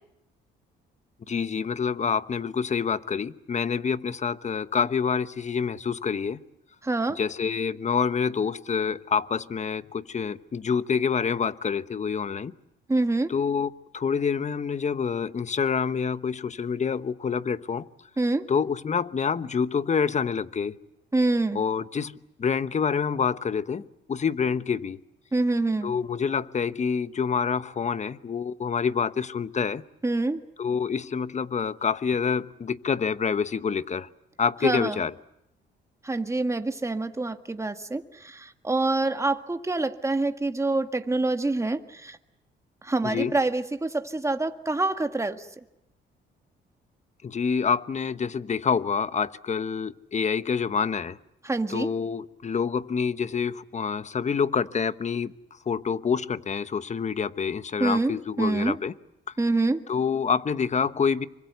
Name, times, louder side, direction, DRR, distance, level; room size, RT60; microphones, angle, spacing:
voice 1, 1.3-6.4 7.1-12.5 13.3-17.9 18.5-20.8 21.5-23.8 24.1-25.0 25.8-29.8 30.6-34.1 34.4-35.1 43.0-43.3 47.2-51.2 51.7-55.3 55.7-58.9 59.9-61.3, left 6 dB, 35° left, 14 dB, 1.1 m, -27 dB
voice 2, 6.8-7.2 12.9-13.3 18.2-18.5 21.1-21.6 25.3-25.9 30.0-30.4 34.6-35.0 36.0-42.2 42.8-45.5 51.4-51.9 57.8-58.8 59.4-59.8, right 2 dB, 15° right, 7 dB, 1.8 m, -26 dB
27.0 x 24.5 x 8.1 m, 0.82 s
cardioid pair, 90°, 20 cm